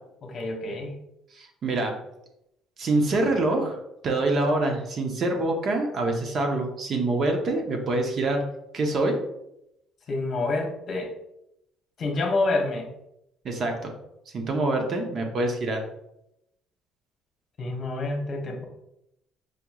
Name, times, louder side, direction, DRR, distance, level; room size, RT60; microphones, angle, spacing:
voice 1, 0.2-1.0 10.1-11.1 12.0-12.9 17.6-18.7, left 2 dB, 45° left, 1 dB, 1.0 m, -28 dB
voice 2, 1.4-1.9 2.8-3.8 4.0-8.4 8.7-9.2 13.4-13.9 14.3-15.8, right 2 dB, 45° right, 3 dB, 0.8 m, -25 dB
4.9 x 2.9 x 2.4 m, 0.82 s
cardioid pair, 115°, 0 cm